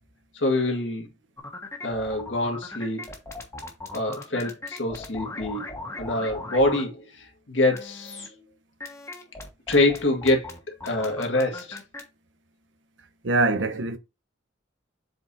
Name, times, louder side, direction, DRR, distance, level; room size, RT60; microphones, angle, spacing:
voice 1, 0.3-1.1 1.8-3.1 3.9-5.6 6.0-8.3 9.7-10.5 10.8-11.8, left 2 dB, 80° left, 2.0 m, -25 dB
sound 1, 1.4-6.8 7.7-8.3 8.8-12.0, left 2 dB, 15° left, 1.4 m, -38 dB
voice 2, 13.2-14.0, right 2 dB, 90° right, 0.9 m, -23 dB
7.7 x 4.5 x 2.8 m
head